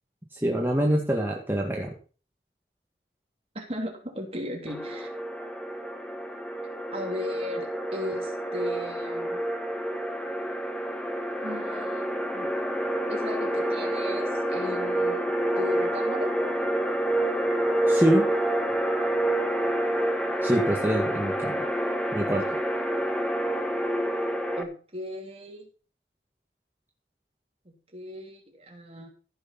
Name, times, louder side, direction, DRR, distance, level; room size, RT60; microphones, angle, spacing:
voice 1, 0.3-1.9 17.9-18.3 20.4-21.6 22.1-22.6, right 1 dB, 10° right, 0 dB, 1.7 m, -25 dB
voice 2, 3.5-5.1 6.9-9.4 11.4-12.5 13.1-16.3 24.6-25.7 27.6-29.1, left 1 dB, 35° right, 2 dB, 3.1 m, -36 dB
sound 1, 4.7-24.6, right 1 dB, 5° left, 1.3 m, -28 dB
15.0 x 6.5 x 5.7 m, 0.38 s
head